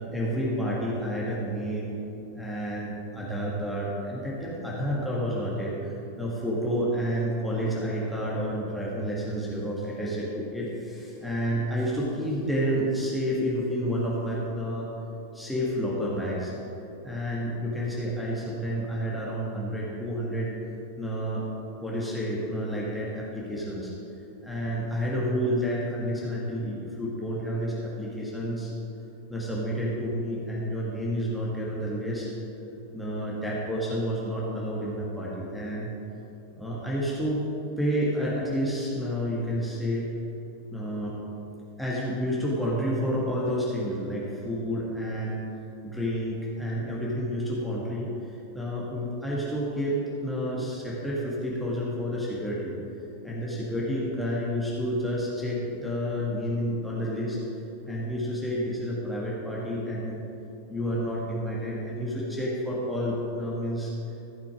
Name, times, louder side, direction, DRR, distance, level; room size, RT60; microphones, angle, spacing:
voice 1, 0.0-1.9 2.3-14.9 15.3-16.5 17.0-20.5 21.0-21.5 21.8-23.9 24.4-28.7 29.3-32.3 32.9-35.9 36.5-37.5 37.8-40.1 40.7-41.1 41.8-45.4 45.8-48.1 48.5-52.7 53.2-57.4 57.9-60.2 60.7-63.9, equal, ahead, -6 dB, 2.0 m, -30 dB
15.0 x 6.0 x 5.0 m, 3.0 s
figure-of-eight pair, 90°, 0 cm